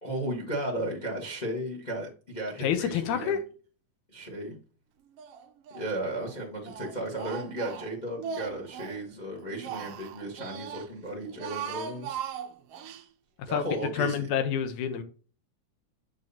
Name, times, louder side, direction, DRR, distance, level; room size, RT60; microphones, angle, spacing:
voice 1, 0.0-3.4 4.1-4.6 5.7-12.2 13.5-14.3, right 1 dB, 65° left, 0.4 m, -35 dB
voice 2, 2.6-3.4 13.5-15.0, left 8 dB, 80° left, 2.3 m, -28 dB
Speech, 5.2-5.9 6.2-9.0 9.4-10.9 11.3-13.0, right 7 dB, 85° right, 1.3 m, -39 dB
7.5 x 6.1 x 2.7 m
omnidirectional pair, 3.6 m